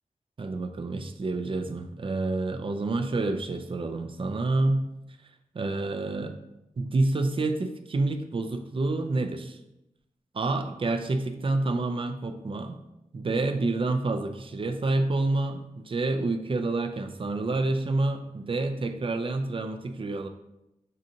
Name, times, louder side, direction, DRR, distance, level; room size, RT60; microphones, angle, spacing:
voice 1, 0.4-4.8 5.5-6.4 6.8-9.6 10.3-12.8 13.1-20.3, right 2 dB, 45° right, 7 dB, 0.5 m, -28 dB
6.3 x 2.5 x 2.8 m, 0.89 s
cardioid pair, 60°, 13 cm